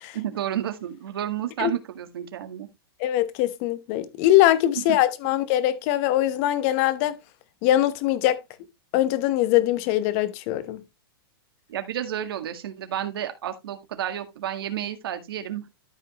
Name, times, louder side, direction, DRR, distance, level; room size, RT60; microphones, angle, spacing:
voice 1, 0.1-2.7 4.8-4.9 11.7-15.7, right 11 dB, 70° right, 1.8 m, -31 dB
voice 2, 3.0-7.2 7.6-8.4 8.9-10.8, left 13 dB, 35° left, 1.0 m, -22 dB
13.0 x 5.3 x 3.0 m
supercardioid pair, 165°, 13 cm